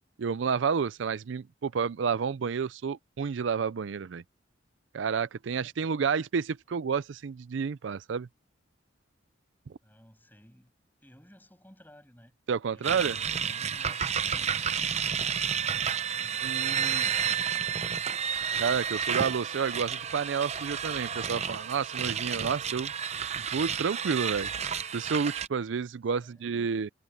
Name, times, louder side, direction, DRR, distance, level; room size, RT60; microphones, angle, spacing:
voice 1, 0.2-4.2 4.9-8.3 12.5-13.2 16.4-17.0 18.6-22.9 23.5-24.5 24.9-26.9, right 6 dB, 70° right, 0.4 m, -30 dB
voice 2, 9.8-10.7 11.0-12.4 12.7-18.1 26.2-26.7, equal, 10° left, 7.4 m, -56 dB
sound 1, 12.8-25.5, right 7 dB, 35° right, 0.7 m, -31 dB
head